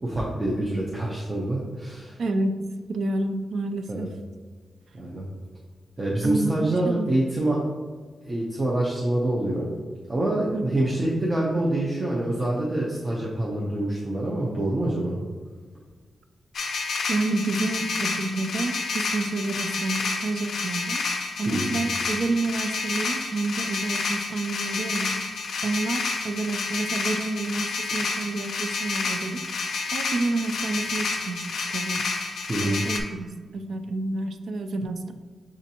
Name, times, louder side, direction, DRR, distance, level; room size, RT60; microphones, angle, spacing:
voice 1, 0.0-2.2 3.9-4.1 4.9-5.3 6.0-7.6 8.3-9.7 10.1-15.2 21.5-21.7 32.5-32.8, right 1 dB, 25° right, -5 dB, 0.6 m, -26 dB
voice 2, 2.2-2.6 2.9-4.1 6.2-7.1 10.5-10.7 17.1-21.0 21.4-25.2 25.6-29.4 29.9-32.1 32.6-35.1, right 2 dB, 70° right, 8 dB, 0.3 m, -29 dB
sound 1, 16.5-33.0, left 4 dB, 75° left, 0.5 m, -29 dB
5.9 x 2.5 x 2.7 m, 1.5 s
wide cardioid pair, 130°, 0 cm